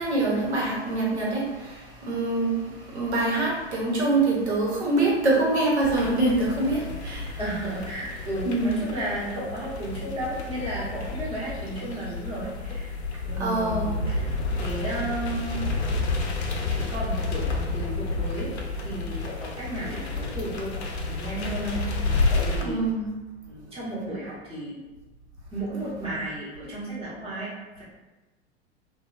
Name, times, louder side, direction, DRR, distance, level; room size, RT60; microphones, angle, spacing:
voice 1, 0.0-7.4 8.4-8.8 13.4-14.0 22.7-23.1, right 2 dB, 80° right, -5 dB, 0.9 m, -25 dB
sound 1, 5.8-22.6, left 3 dB, 75° left, 0.5 m, -30 dB
voice 2, 7.4-12.9 13.2-15.8 16.7-18.5 18.8-22.8 23.5-24.8 25.5-27.8, right 1 dB, 20° right, -9 dB, 1.2 m, -34 dB
2.8 x 2.1 x 2.4 m, 1.1 s
figure-of-eight pair, 85°, 33 cm